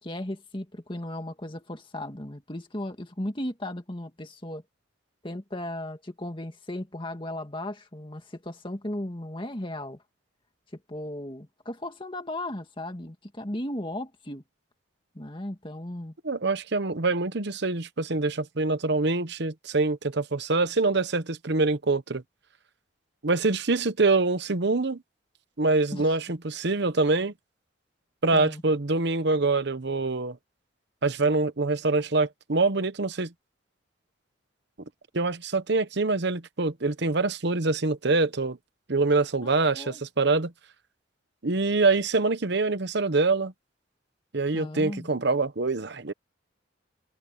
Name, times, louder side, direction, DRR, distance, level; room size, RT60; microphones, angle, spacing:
voice 1, 0.0-4.6 5.2-10.0 10.9-14.4 15.2-16.1 25.9-26.2 28.3-28.6 39.4-40.0 44.5-45.1, left 1 dB, 25° left, 2.1 m, -36 dB
voice 2, 16.2-22.2 23.2-25.0 25.6-27.3 28.2-30.4 31.0-33.3 35.1-38.6 38.9-40.5 41.4-43.5 44.3-46.1, right 3 dB, 60° right, 1.0 m, -25 dB
open air
head